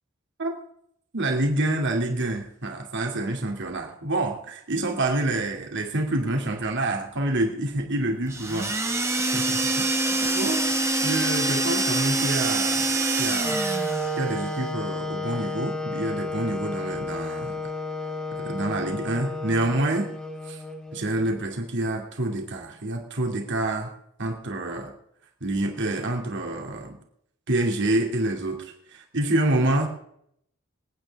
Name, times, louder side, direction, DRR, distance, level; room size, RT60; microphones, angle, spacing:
voice 1, 1.1-8.8 9.3-10.0 10.2-13.7 14.2-17.6 18.3-20.1 20.5-20.6 20.9-23.9 24.2-24.9 25.4-27.0 27.5-28.7 29.1-29.9, right 1 dB, 60° right, 3 dB, 2.7 m, -27 dB
sound 1, 8.3-14.2, right 2 dB, 15° right, 1.3 m, -25 dB
Wind instrument woodwind instrument, 13.4-21.4, left 1 dB, 5° left, 2.1 m, -32 dB
26.5 x 9.4 x 3.6 m, 0.70 s
head